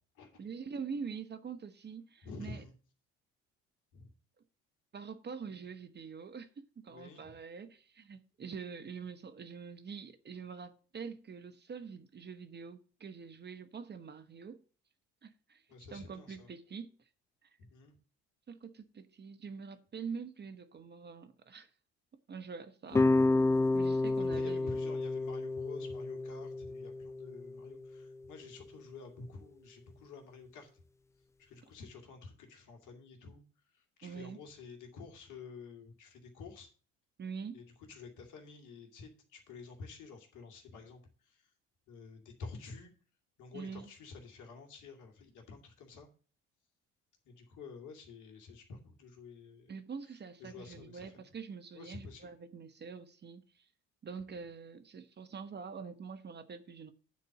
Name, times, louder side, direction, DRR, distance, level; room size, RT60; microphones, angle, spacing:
voice 1, 0.4-2.6 4.9-14.6 15.2-15.6 15.9-17.0 18.5-21.7 22.3-23.1 23.7-24.7 34.0-34.4 37.2-37.6 43.5-43.9 49.7-53.6 54.0-56.9, right 5 dB, 30° right, 1.0 m, -45 dB
voice 2, 2.2-2.7 3.9-4.1 5.5-5.6 6.9-7.3 15.7-16.5 17.6-17.9 22.9-23.3 24.3-30.8 31.4-33.4 33.7-36.7 37.5-41.5 41.9-42.9 43.4-46.1 47.2-49.8 50.4-51.3 51.7-52.3, left 4 dB, 65° left, 2.4 m, -50 dB
sound 1, 22.9-28.0, left 2 dB, 10° left, 0.3 m, -30 dB
9.5 x 4.3 x 7.5 m
hypercardioid pair, 65°, 32 cm